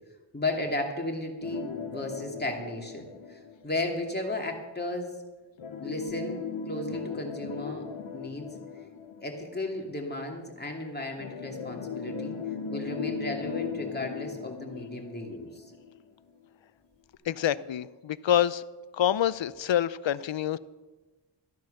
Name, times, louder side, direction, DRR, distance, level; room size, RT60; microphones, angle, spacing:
voice 1, 0.3-5.1 5.8-7.8 8.1-8.5 9.2-12.4 12.7-15.6, left 2 dB, 20° left, 1 dB, 2.6 m, -34 dB
sound 1, 1.4-4.1 5.6-9.9 11.2-16.1 16.4-16.5 17.1-17.2, left 6 dB, 90° left, 1.1 m, -38 dB
voice 2, 17.3-18.6 18.9-20.6, left 10 dB, 70° left, 18 dB, 0.6 m, -26 dB
13.5 x 10.5 x 6.6 m, 1.2 s
wide cardioid pair, 85°, 47 cm